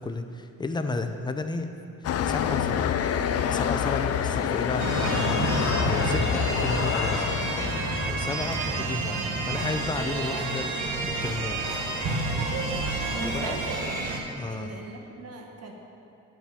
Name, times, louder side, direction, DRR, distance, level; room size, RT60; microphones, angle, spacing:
voice 1, 0.0-1.7 2.0-3.0 3.4-7.3 8.0-11.6 13.2-13.6 14.4-14.7, left 3 dB, 15° left, 7 dB, 0.7 m, -33 dB
sound 1, 2.0-8.6, left 8 dB, 55° left, 0.5 m, -27 dB
sound 2, 4.8-14.2, right 2 dB, 85° right, 1.3 m, -29 dB
voice 2, 13.1-14.1 14.4-15.7, right 2 dB, 55° right, 1 dB, 1.5 m, -38 dB
9.1 x 8.2 x 4.9 m, 2.6 s
cardioid pair, 90°, 30 cm